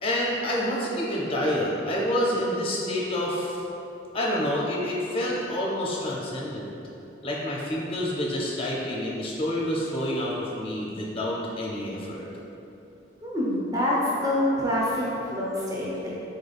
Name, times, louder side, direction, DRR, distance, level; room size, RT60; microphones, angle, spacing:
voice 1, 0.0-3.6 4.1-6.7 7.2-12.2, equal, 30° left, -4 dB, 0.5 m, -28 dB
voice 2, 13.2-14.0 14.2-15.0 15.3-16.1, left 1 dB, 20° right, -7 dB, 0.6 m, -26 dB
3.9 x 3.4 x 2.3 m, 2.9 s
head